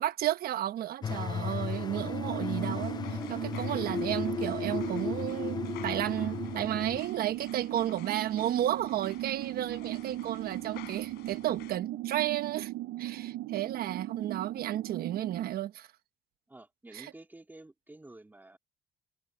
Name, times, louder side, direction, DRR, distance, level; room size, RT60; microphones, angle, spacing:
voice 1, 0.0-5.6 5.8-12.7 13.0-15.9 16.9-17.1, right 12 dB, 65° right, 1.1 m, -33 dB
sound 1, 1.0-7.0, left 6 dB, 25° left, 0.4 m, -35 dB
sound 2, 2.0-15.5, right 16 dB, 80° right, 0.7 m, -38 dB
sound 3, 2.6-11.8, left 17 dB, 85° left, 5.6 m, -52 dB
voice 2, 7.7-8.0 16.5-18.6, right 2 dB, 10° right, 3.2 m, -51 dB
cardioid pair, 110°, 17 cm